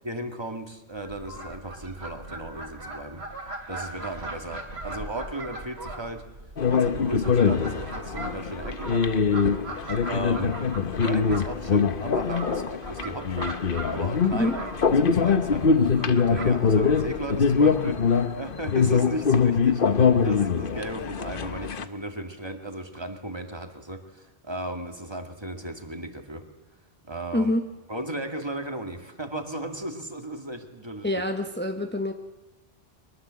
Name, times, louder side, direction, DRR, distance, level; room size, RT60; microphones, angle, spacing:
voice 1, 0.0-6.2 6.7-9.1 10.1-10.6 11.0-13.5 13.9-26.4 27.1-27.5 27.9-31.1, right 1 dB, 25° right, 5 dB, 2.2 m, -35 dB
Fowl, 1.0-18.3, right 2 dB, 85° right, 3.3 m, -40 dB
sound 1, 6.6-21.8, left 5 dB, 60° left, 1.1 m, -23 dB
voice 2, 27.3-27.7 31.0-32.1, left 1 dB, 10° left, 5 dB, 1.1 m, -26 dB
23.0 x 21.0 x 7.7 m, 1.1 s
omnidirectional pair, 1.1 m